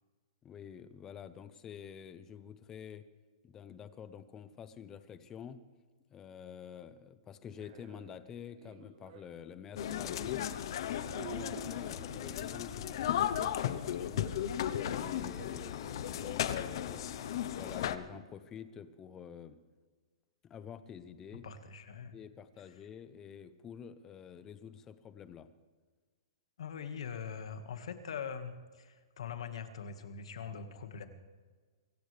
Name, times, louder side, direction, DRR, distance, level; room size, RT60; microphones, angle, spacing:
voice 1, 0.4-3.0 3.4-5.6 6.1-10.5 11.0-14.3 14.8-17.0 17.4-19.6 20.4-21.5 22.1-25.5, left 8 dB, 15° left, 12 dB, 0.7 m, -48 dB
sound 1, 7.5-9.4 10.2-10.6 11.1-15.8 16.4-16.5 18.1-18.3, right 9 dB, 45° right, 1.2 m, -52 dB
sound 2, 9.8-18.0, left 10 dB, 50° left, 0.9 m, -35 dB
voice 2, 21.3-22.1 26.6-31.1, left 6 dB, 75° left, 8 dB, 1.8 m, -42 dB
24.5 x 15.0 x 3.4 m, 1.4 s
hypercardioid pair, 165°, 3 cm